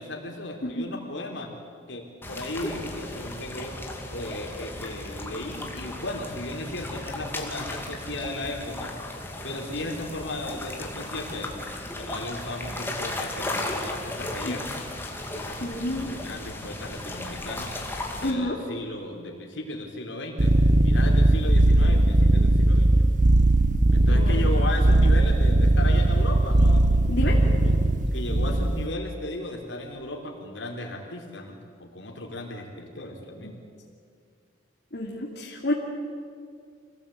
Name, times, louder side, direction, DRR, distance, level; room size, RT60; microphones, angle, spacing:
voice 1, 0.0-1.5 1.9-3.8 4.1-8.9 9.4-11.5 11.9-14.7 15.3-17.8 18.2-20.5 20.8-23.0 23.9-27.8 28.1-33.5, left 2 dB, 85° left, 1 dB, 4.1 m, -36 dB
sound 1, 2.2-18.3, left 1 dB, 10° left, 2.4 m, -35 dB
voice 2, 15.6-16.1 18.2-18.6 24.1-24.3 27.1-27.4 33.4-33.5 34.9-35.7, left 1 dB, 65° left, -4 dB, 2.8 m, -29 dB
sound 2, 20.4-28.9, right 1 dB, 45° right, 0.7 m, -19 dB
26.0 x 17.5 x 8.7 m, 2.2 s
head